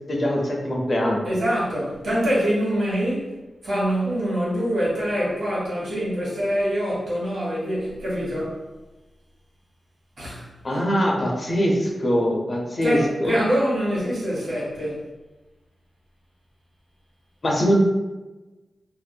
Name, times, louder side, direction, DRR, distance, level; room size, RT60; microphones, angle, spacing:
voice 1, 0.1-1.2 10.6-13.4 17.4-17.7, equal, 45° left, -1 dB, 0.5 m, -22 dB
voice 2, 1.2-3.3 3.6-8.6 10.2-10.8 12.8-15.0, equal, 85° right, -8 dB, 1.3 m, -25 dB
2.5 x 2.5 x 2.2 m, 1.1 s
wide cardioid pair, 85°, 0 cm